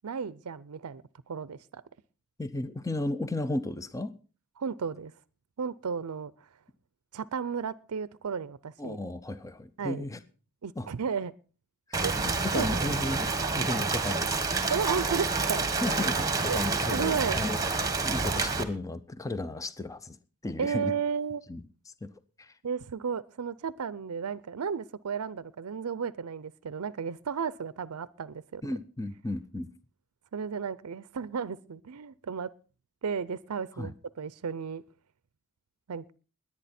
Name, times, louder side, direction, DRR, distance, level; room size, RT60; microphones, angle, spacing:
voice 1, 0.0-1.8 4.6-5.1 5.6-6.3 7.1-9.0 9.8-10.0 10.6-11.3 12.0-12.1 12.5-12.7 14.7-15.7 16.5-16.6 16.9-17.4 20.6-21.4 22.6-28.6 30.3-32.5 33.0-34.8 35.9-36.1, right 6 dB, 80° right, 18 dB, 0.5 m, -33 dB
voice 2, 2.4-4.1 8.8-10.2 10.8-10.9 11.9-13.3 13.5-14.4 15.8-20.2 20.4-20.9 21.5-21.6 22.0-22.1 22.4-22.6 28.6-29.7 33.8-33.9, left 2 dB, 15° left, 13 dB, 0.5 m, -34 dB
Rain, 11.9-18.6, right 4 dB, 15° right, 1.3 m, -28 dB
21.0 x 8.7 x 4.3 m, 0.37 s
head